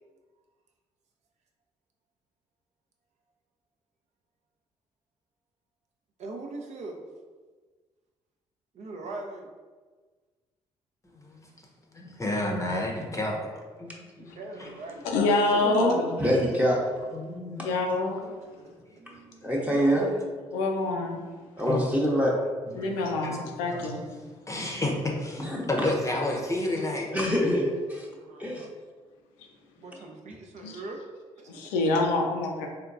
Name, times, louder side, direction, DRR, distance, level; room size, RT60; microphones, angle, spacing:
voice 1, 6.2-7.0 8.7-9.5 14.2-15.3 17.8-17.9 19.1-19.2 28.2-28.7 29.8-31.1 31.4-31.6, right 2 dB, 55° right, 2 dB, 0.5 m, -41 dB
voice 2, 11.0-11.5 11.9-14.7 15.5-16.3 17.1-17.7 18.0-18.4 18.7-20.0 21.7-21.8 22.7-23.8 24.5-27.1, left 1 dB, 20° left, -1 dB, 0.7 m, -32 dB
voice 3, 15.0-16.0 17.6-18.2 20.5-21.2 22.7-24.1 30.6-30.8 31.5-32.7, left 2 dB, 80° left, 2 dB, 0.5 m, -26 dB
voice 4, 16.2-16.8 17.6-17.7 19.4-20.3 21.6-22.3 25.4-25.9 27.1-28.1 28.4-28.6, equal, 10° right, -4 dB, 0.8 m, -25 dB
3.6 x 2.3 x 2.5 m, 1.4 s
hypercardioid pair, 45°, 14 cm